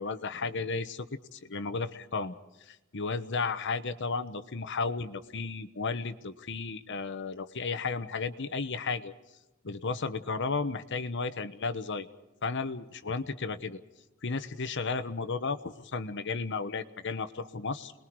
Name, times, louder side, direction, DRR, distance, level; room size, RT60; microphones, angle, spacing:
voice 1, 0.0-2.3 2.7-9.1 9.6-12.1 12.4-13.8 14.2-17.9, left 4 dB, 60° left, 10 dB, 1.1 m, -33 dB
29.5 x 21.0 x 4.7 m, 0.99 s
head